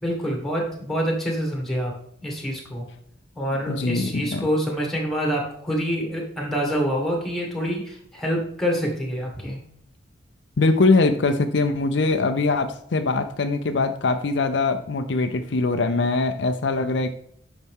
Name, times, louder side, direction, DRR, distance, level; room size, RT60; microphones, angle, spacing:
voice 1, 0.0-1.9 2.2-2.9 3.4-9.6, equal, ahead, 0 dB, 1.9 m, -26 dB
voice 2, 3.7-4.5 10.6-17.1, left 3 dB, 65° left, 8 dB, 0.5 m, -22 dB
9.6 x 5.9 x 3.6 m, 0.67 s
head